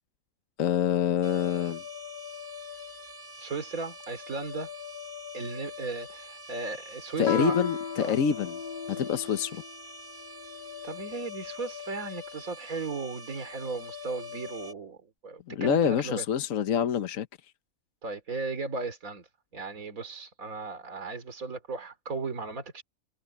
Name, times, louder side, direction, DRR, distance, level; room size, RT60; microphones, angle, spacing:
voice 1, 0.6-1.8 7.2-8.6 9.0-9.6 15.5-17.3, left 8 dB, 70° left, 1.3 m, -26 dB
sound 1, 1.2-14.7, left 5 dB, 35° right, 3.1 m, -43 dB
voice 2, 3.4-4.7 5.3-7.6 8.0-8.1 8.9-9.1 10.8-15.0 15.2-16.2 18.0-19.3 19.5-22.8, right 4 dB, 70° right, 3.3 m, -36 dB
Guitar, 7.2-9.7, left 5 dB, 35° left, 1.2 m, -34 dB
omnidirectional pair, 1.5 m